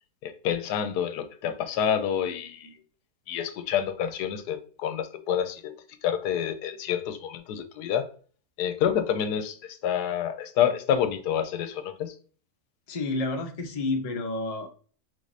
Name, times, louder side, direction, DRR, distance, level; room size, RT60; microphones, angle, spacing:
voice 1, 0.2-2.7 3.3-5.7 6.0-8.1 8.6-12.1, left 9 dB, 90° left, 1.2 m, -28 dB
voice 2, 12.9-14.7, left 2 dB, 40° left, 0.5 m, -30 dB
4.9 x 3.8 x 2.6 m
omnidirectional pair, 1.7 m